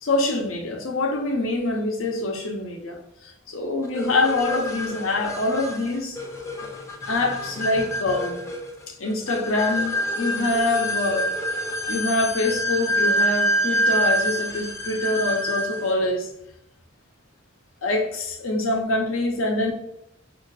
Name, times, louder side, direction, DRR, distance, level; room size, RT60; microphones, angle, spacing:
voice 1, 0.0-6.4 7.1-8.4 8.9-11.3 11.9-16.3 17.8-19.7, left 2 dB, 80° left, 2 dB, 0.8 m, -25 dB
sound 1, 4.0-15.9, equal, 15° left, 0.5 m, -27 dB
3.7 x 2.7 x 4.7 m, 0.79 s
head